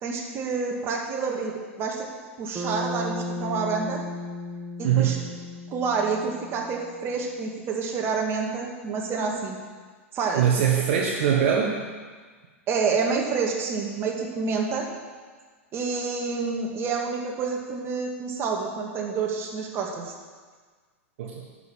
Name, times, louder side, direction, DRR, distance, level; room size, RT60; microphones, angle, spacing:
voice 1, 0.0-2.1 2.4-4.0 4.8-5.2 5.7-9.6 10.1-10.4 10.8-10.9 12.7-14.9 15.7-20.0, right 5 dB, 35° right, 0 dB, 2.2 m, -28 dB
Bass guitar, 2.5-6.9, left 2 dB, 15° right, 1.2 m, -35 dB
voice 2, 4.8-5.3 10.3-11.8 21.2-21.5, right 8 dB, 55° right, -1 dB, 1.3 m, -22 dB
11.0 x 6.6 x 7.4 m, 1.5 s
figure-of-eight pair, 95°, 7 cm